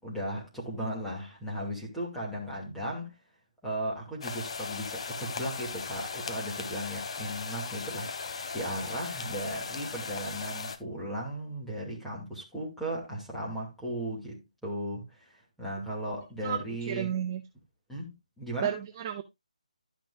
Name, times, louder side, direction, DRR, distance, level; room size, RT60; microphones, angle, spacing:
voice 1, 0.0-3.1 3.6-15.3 15.6-17.1 17.9-18.8, right 1 dB, ahead, 2.5 m, -36 dB
sound 1, 4.2-10.8, left 5 dB, 45° left, 1.0 m, -37 dB
voice 2, 16.9-17.4 18.6-19.2, right 10 dB, 25° right, 0.5 m, -32 dB
12.0 x 6.0 x 2.5 m
figure-of-eight pair, 160°, 4 cm